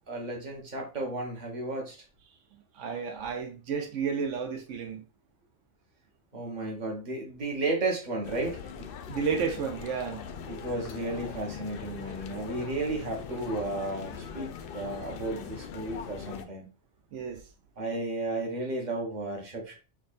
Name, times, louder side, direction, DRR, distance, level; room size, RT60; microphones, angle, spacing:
voice 1, 0.1-2.0 6.3-8.9 10.5-16.7 17.8-19.8, right 2 dB, 40° right, 1.2 m, -33 dB
voice 2, 2.7-5.0 9.1-10.2 17.1-17.4, right 6 dB, 85° right, 1.0 m, -32 dB
sound 1, 8.2-16.4, left 7 dB, 60° left, 0.6 m, -41 dB
6.0 x 2.4 x 2.4 m
omnidirectional pair, 1.2 m